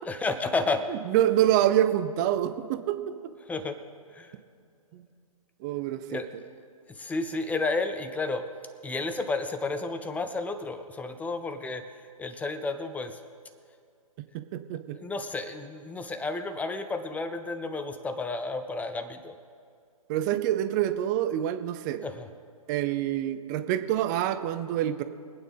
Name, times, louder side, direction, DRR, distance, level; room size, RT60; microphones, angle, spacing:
voice 1, 0.1-0.9 3.4-3.8 4.1-4.3 6.1-6.5 6.9-8.5 8.8-13.2 14.9-19.4 22.0-22.3, left 3 dB, 10° left, 9 dB, 0.6 m, -32 dB
voice 2, 0.9-3.3 4.9-5.0 5.6-6.2 14.2-15.0 20.1-22.0 22.7-25.0, right 12 dB, 30° right, 11 dB, 0.7 m, -26 dB
24.5 x 9.1 x 3.5 m, 2.3 s
figure-of-eight pair, 125°, 19 cm